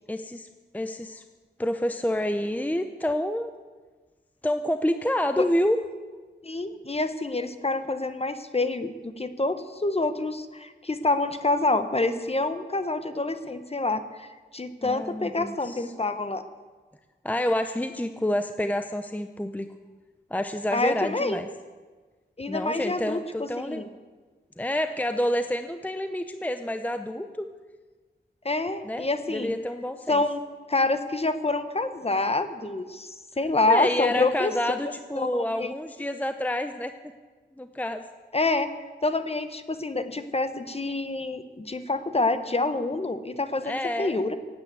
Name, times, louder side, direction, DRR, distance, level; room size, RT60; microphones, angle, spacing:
voice 1, 0.1-0.5 0.7-1.2 1.6-3.5 4.4-5.8 14.8-15.9 17.2-19.7 20.3-21.5 22.5-23.8 24.6-27.5 28.8-30.2 33.7-36.9 37.6-38.0 43.6-44.2, left 1 dB, 10° left, 8 dB, 0.7 m, -28 dB
voice 2, 6.4-14.3 14.5-16.4 20.7-21.4 22.4-23.9 28.4-29.5 30.1-30.4 30.7-34.5 35.1-35.7 38.3-38.7 39.0-44.4, left 2 dB, 35° left, 10 dB, 1.1 m, -27 dB
17.5 x 8.9 x 8.1 m, 1.4 s
wide cardioid pair, 90°, 19 cm